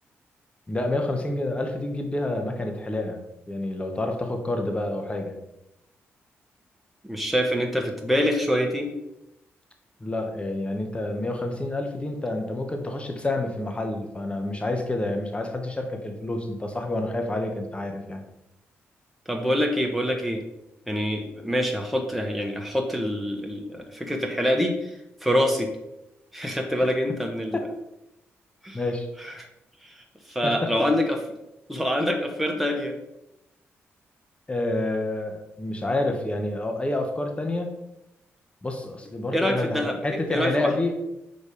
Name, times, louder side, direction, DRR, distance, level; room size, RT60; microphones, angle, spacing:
voice 1, 0.7-3.2 3.5-5.4 10.0-18.2 26.8-26.9 27.5-27.6 28.7-29.1 30.4-30.5 34.5-37.7 38.6-40.9, left 2 dB, 20° left, 4 dB, 1.2 m, -28 dB
voice 2, 7.0-8.9 19.3-20.4 20.9-24.9 25.2-25.7 26.3-27.6 28.6-28.8 29.2-29.3 29.8-29.9 30.3-31.2 31.7-32.9 39.3-39.9 40.3-40.7, equal, ahead, 1 dB, 1.1 m, -25 dB
5.1 x 4.1 x 5.0 m, 0.89 s
cardioid pair, 60°, 5 cm